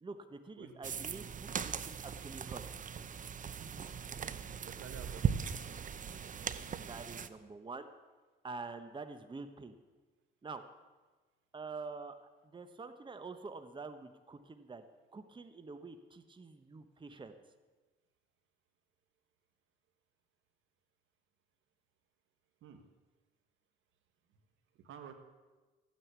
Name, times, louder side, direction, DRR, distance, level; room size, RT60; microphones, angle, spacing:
voice 1, 0.0-2.6 6.9-7.9 8.4-9.8 10.4-10.6 11.5-12.1 12.4-14.8 15.1-17.3, right 4 dB, 25° right, 9 dB, 1.1 m, -46 dB
sound 1, 0.8-7.3, right 7 dB, 40° right, 0.7 m, -39 dB
voice 2, 4.6-5.6 22.6-22.8 24.8-25.1, right 7 dB, 80° right, 7 dB, 1.7 m, -50 dB
14.5 x 9.5 x 8.2 m, 1.3 s
cardioid pair, 90°, 20 cm